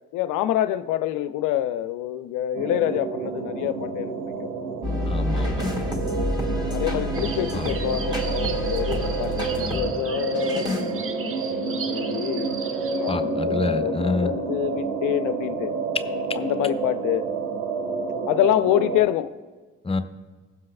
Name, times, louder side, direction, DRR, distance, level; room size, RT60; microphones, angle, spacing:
voice 1, 0.1-4.1 4.4-4.5 6.7-12.6 12.9-15.7 16.3-17.3 18.3-19.3, left 12 dB, 55° left, 12 dB, 0.5 m, -26 dB
sound 1, 2.5-19.0, right 4 dB, 75° right, 0.8 m, -29 dB
sound 2, 4.8-9.8 10.3-10.8, left 2 dB, 10° right, 1.8 m, -28 dB
voice 2, 5.1-5.7 7.5-7.7 13.1-14.3 19.8-20.0, left 3 dB, 15° left, 10 dB, 0.7 m, -27 dB
sound 3, 7.1-13.1, right 5 dB, 35° right, 0.8 m, -36 dB
21.0 x 7.4 x 2.2 m, 1.3 s
figure-of-eight pair, 40°, 37 cm